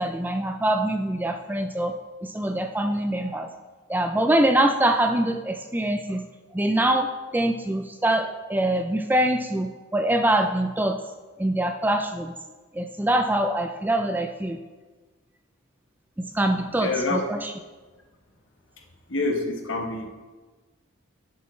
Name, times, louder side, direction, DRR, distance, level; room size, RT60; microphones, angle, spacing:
voice 1, 0.0-1.9 2.2-3.5 3.9-6.2 6.5-7.1 7.3-11.0 11.4-12.3 12.7-14.6 16.2-17.5, right 1 dB, 10° right, 6 dB, 0.3 m, -24 dB
voice 2, 16.8-17.2 19.1-20.1, left 2 dB, 65° left, 2 dB, 1.2 m, -26 dB
12.0 x 6.9 x 3.2 m, 1.3 s
head